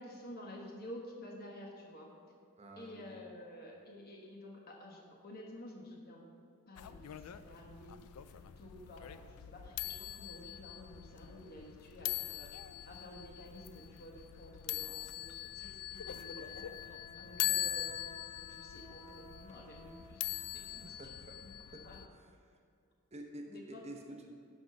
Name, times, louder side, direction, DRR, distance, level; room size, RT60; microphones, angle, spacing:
voice 1, 0.0-2.1 2.8-6.2 6.7-12.5 12.9-21.0 21.4-21.5 21.8-22.0 23.5-23.9, equal, 45° left, -1 dB, 1.2 m, -51 dB
voice 2, 2.6-3.2 17.5-17.6 20.7-21.4 21.7-21.8 22.1-22.3 23.1-24.3, right 1 dB, 30° right, 2 dB, 0.9 m, -49 dB
sound 1, 6.8-22.1, left 13 dB, 90° left, 0.4 m, -42 dB
Wind instrument woodwind instrument, 16.5-21.0, right 2 dB, 85° right, 1.7 m, -59 dB
10.5 x 4.0 x 6.5 m, 2.3 s
head